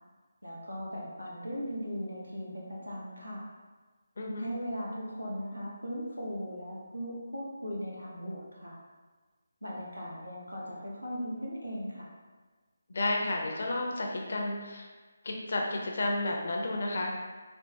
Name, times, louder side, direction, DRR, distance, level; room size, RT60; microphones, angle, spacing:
voice 1, 0.4-3.5 4.4-8.8 9.6-12.1, equal, 90° right, -4 dB, 0.8 m, -38 dB
voice 2, 4.2-4.5 12.9-14.9 15.2-17.1, left 2 dB, 50° left, 0 dB, 0.5 m, -31 dB
3.4 x 2.1 x 2.7 m, 1.3 s
figure-of-eight pair, 150°, 0 cm